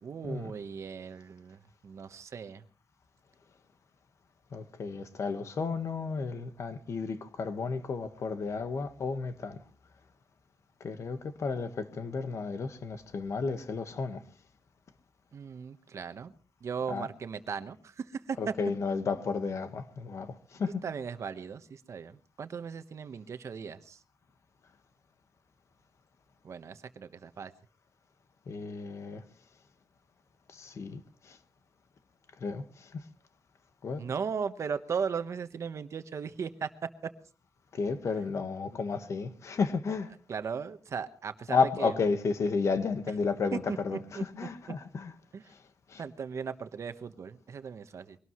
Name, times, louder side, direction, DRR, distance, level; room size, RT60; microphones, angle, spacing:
voice 1, 0.0-2.6 15.3-16.3 16.6-18.5 20.7-24.0 26.4-27.5 34.0-37.1 40.3-42.0 43.5-44.2 45.3-45.4 46.0-48.2, right 6 dB, 50° right, 1.2 m, -37 dB
voice 2, 4.5-9.6 10.8-14.2 16.9-17.1 18.4-20.8 28.5-29.2 30.5-31.4 32.4-33.0 33.8-34.0 37.7-40.1 41.5-45.1 45.9-46.0, left 4 dB, 55° left, 1.5 m, -32 dB
23.0 x 18.5 x 3.1 m
wide cardioid pair, 165°, 6 cm